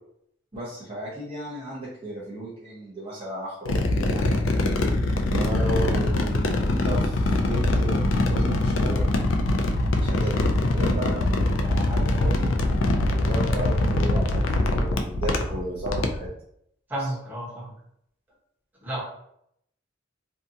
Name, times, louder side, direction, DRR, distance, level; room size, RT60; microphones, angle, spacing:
voice 1, 0.5-4.3 5.3-9.0 9.9-10.3 10.7-12.5 13.1-16.3, right 1 dB, 30° right, -8 dB, 0.6 m, -34 dB
sound 1, 3.7-16.3, left 2 dB, 85° left, 0.4 m, -23 dB
voice 2, 5.6-5.9 16.9-17.7 18.8-19.0, right 1 dB, 10° right, -7 dB, 0.9 m, -32 dB
2.7 x 2.4 x 2.6 m, 0.73 s
head